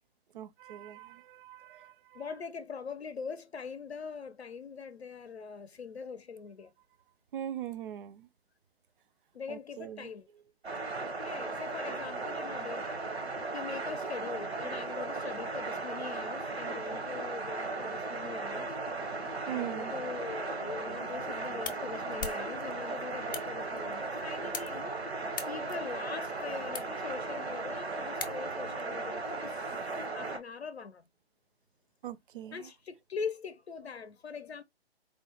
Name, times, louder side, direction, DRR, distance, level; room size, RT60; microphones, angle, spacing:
voice 1, 0.3-2.2 7.3-8.3 9.5-10.1 19.5-20.0 32.0-32.7, right 11 dB, 55° right, 0.5 m, -41 dB
voice 2, 2.1-6.7 9.3-10.3 11.0-12.9 13.5-18.8 19.5-31.0 32.5-34.6, left 5 dB, 85° left, 0.6 m, -42 dB
sound 1, 10.6-30.4, right 3 dB, 90° right, 1.0 m, -37 dB
sound 2, 21.0-28.8, left 5 dB, 20° left, 0.3 m, -45 dB
4.2 x 2.2 x 2.9 m
figure-of-eight pair, 130°, 31 cm